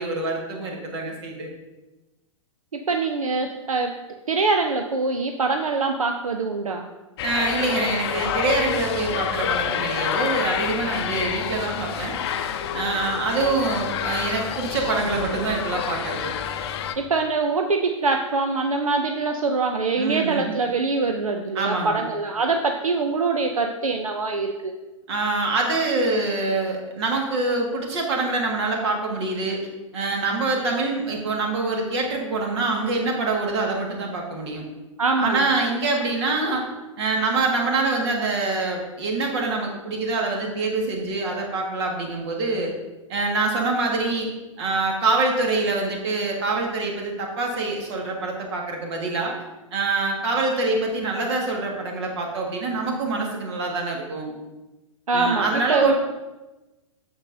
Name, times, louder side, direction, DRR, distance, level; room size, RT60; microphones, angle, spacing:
voice 1, 0.0-1.5 7.2-12.2 12.7-16.3 19.9-20.5 21.5-22.0 25.1-29.6 29.9-34.7 35.2-36.6 37.0-42.7 43.1-44.3 44.6-49.3 49.7-54.3 55.1-55.9, right 3 dB, 50° right, 1 dB, 1.8 m, -25 dB
voice 2, 2.7-3.9 4.3-6.9 17.0-24.7 35.0-35.5 55.1-55.9, right 3 dB, 85° right, 4 dB, 0.6 m, -24 dB
sound 1, 7.2-16.9, left 8 dB, 50° left, 0.6 m, -28 dB
8.1 x 7.1 x 2.7 m, 1.1 s
figure-of-eight pair, 110°, 17 cm